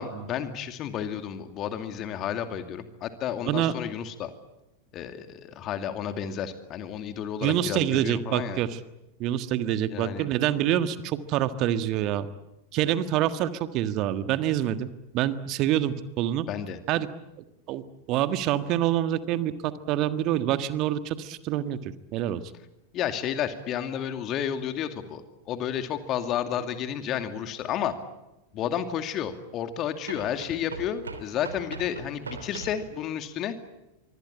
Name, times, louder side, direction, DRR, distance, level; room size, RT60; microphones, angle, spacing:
voice 1, 0.0-4.3 4.9-8.6 9.9-10.3 16.5-16.8 22.9-25.2 25.5-27.9 28.5-33.6, left 9 dB, 35° left, 8 dB, 2.5 m, -31 dB
voice 2, 7.4-8.8 9.2-12.3 12.7-16.5 16.9-17.1 17.7-17.8 18.1-22.4, right 12 dB, 40° right, 11 dB, 1.6 m, -26 dB
sound 1, 27.6-27.7 30.0-32.9, right 3 dB, 75° right, 3.0 m, -40 dB
26.0 x 24.0 x 8.9 m, 0.93 s
figure-of-eight pair, 90°, 0 cm